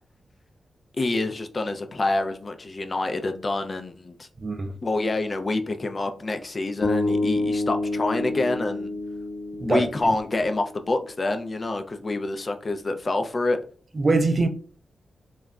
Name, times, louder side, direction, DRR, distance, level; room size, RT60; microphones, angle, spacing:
voice 1, 1.0-4.3 4.8-8.9 9.6-13.6, left 2 dB, 40° left, 0.4 m, -27 dB
voice 2, 4.4-4.8 9.6-9.8 14.0-14.5, right 3 dB, 35° right, 0.4 m, -22 dB
sound 1, 6.8-11.0, left 2 dB, 65° left, 0.7 m, -28 dB
2.3 x 2.0 x 3.5 m
cardioid pair, 85°, 0 cm